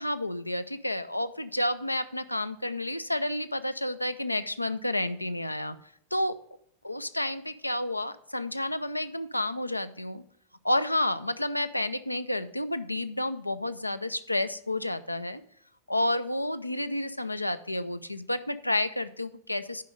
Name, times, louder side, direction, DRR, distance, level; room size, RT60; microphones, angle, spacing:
voice 1, 0.0-5.8 6.1-6.4 6.8-10.2 10.6-15.4 15.9-19.8, left 1 dB, 85° left, 11 dB, 0.4 m, -30 dB
10.5 x 5.2 x 5.0 m, 0.69 s
figure-of-eight pair, 90°, 0 cm